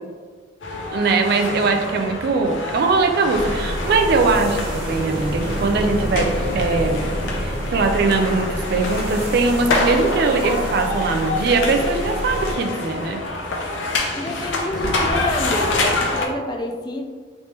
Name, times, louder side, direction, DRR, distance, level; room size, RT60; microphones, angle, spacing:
sound 1, 0.6-16.2, left 2 dB, 80° left, 0.6 m, -27 dB
voice 1, 0.9-7.1 7.4-13.2, right 3 dB, 55° right, 5 dB, 0.3 m, -21 dB
sound 2, 3.3-12.5, equal, 30° right, 0.8 m, -28 dB
voice 2, 14.1-17.1, left 1 dB, 20° left, 2 dB, 0.3 m, -28 dB
3.2 x 3.1 x 2.9 m, 1.5 s
head